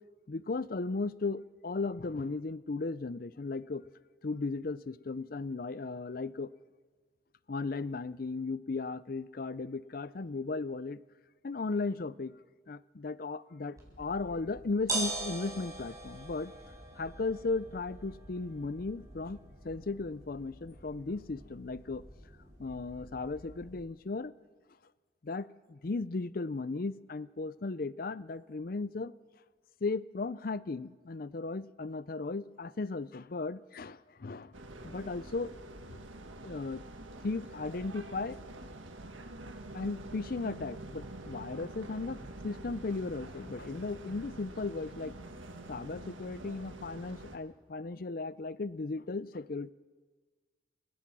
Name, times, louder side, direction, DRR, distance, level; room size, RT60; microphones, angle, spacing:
voice 1, 0.3-3.8 4.2-6.5 7.5-11.0 11.4-12.3 12.7-16.5 17.0-19.4 19.6-22.0 22.6-24.3 25.2-29.1 29.8-34.5 34.8-35.5 35.9-36.0 36.4-36.8 37.2-38.4 39.7-45.1 45.7-49.7, left 3 dB, 50° left, 18 dB, 0.5 m, -36 dB
sound 1, 13.8-23.8, right 2 dB, 15° right, 6.7 m, -43 dB
sound 2, 34.5-47.4, right 2 dB, 85° right, 1.8 m, -46 dB
29.0 x 16.0 x 6.2 m, 1.5 s
head